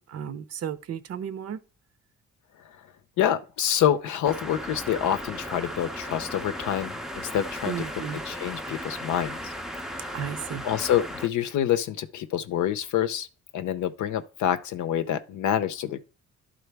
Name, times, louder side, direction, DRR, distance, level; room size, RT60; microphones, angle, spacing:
voice 1, 0.1-1.6 7.7-8.2 10.1-10.6, right 8 dB, 55° right, 0.6 m, -33 dB
voice 2, 3.2-7.9 8.2-9.5 9.9-10.2 10.6-13.3 13.5-16.0, left 10 dB, 75° left, 0.7 m, -27 dB
sound 1, 4.2-11.3, equal, ahead, 0.5 m, -36 dB
11.0 x 3.9 x 3.4 m
cardioid pair, 90°, 30 cm